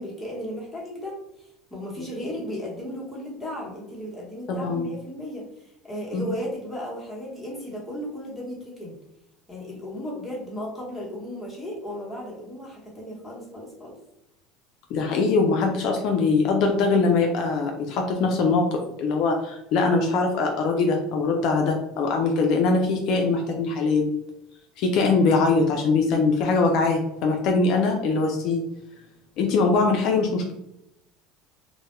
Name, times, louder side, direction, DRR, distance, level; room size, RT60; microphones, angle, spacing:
voice 1, 0.0-9.0 9.5-14.0, equal, 5° left, -5 dB, 1.0 m, -35 dB
voice 2, 4.5-4.9 6.1-6.3 14.9-24.1 24.8-28.6 29.4-30.5, left 3 dB, 60° left, 2 dB, 0.4 m, -22 dB
2.2 x 2.1 x 3.0 m, 0.86 s
supercardioid pair, 125°, 0 cm